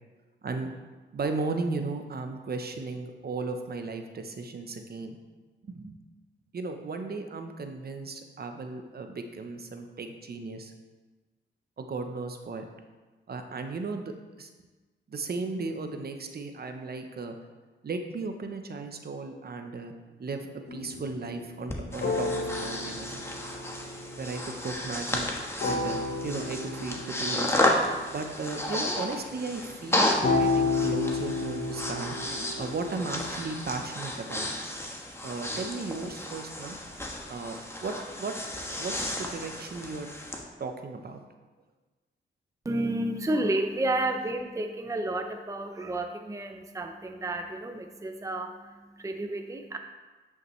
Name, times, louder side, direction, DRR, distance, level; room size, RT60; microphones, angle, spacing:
voice 1, 1.1-5.2 5.6-6.0 6.5-10.7 11.8-12.6 13.3-14.5 15.1-17.4 17.8-19.9 20.2-23.3 24.2-25.3 25.6-26.0 26.2-27.5 28.1-32.2 32.6-34.5 35.2-36.8 37.3-38.4 38.8-40.1 40.6-41.2, right 3 dB, 50° right, 6 dB, 0.8 m, -35 dB
sound 1, 20.7-25.3 25.6-28.4 30.2-33.3, left 3 dB, 60° left, 1.1 m, -32 dB
Breathing, 21.7-40.4, left 1 dB, 15° left, 1.2 m, -32 dB
voice 2, 42.6-49.8, right 1 dB, 15° right, 5 dB, 0.6 m, -31 dB
9.3 x 5.7 x 3.2 m, 1.3 s
cardioid pair, 70°, 20 cm